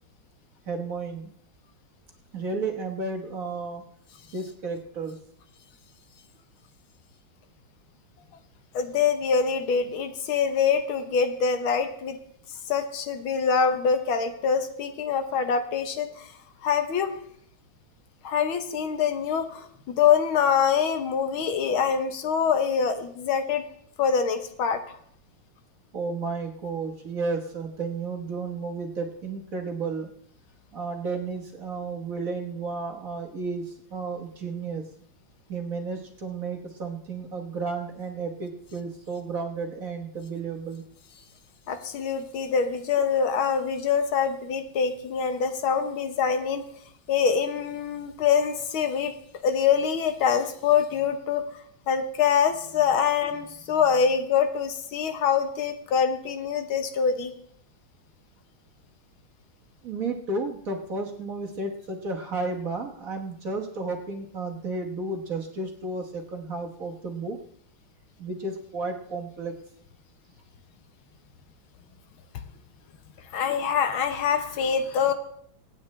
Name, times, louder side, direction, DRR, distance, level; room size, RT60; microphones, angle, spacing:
voice 1, 0.7-1.3 2.3-3.8 4.3-5.2 25.9-30.1 30.7-34.8 35.5-40.8 59.8-67.4 68.2-69.5, right 3 dB, 45° right, 2 dB, 1.4 m, -32 dB
voice 2, 8.7-12.2 12.7-16.3 16.6-17.2 18.2-23.6 24.0-25.0 41.7-46.6 47.1-49.1 49.4-51.4 51.9-57.3 73.3-75.1, left 6 dB, 75° left, 8 dB, 1.8 m, -25 dB
25.5 x 8.7 x 3.2 m, 0.66 s
omnidirectional pair, 2.3 m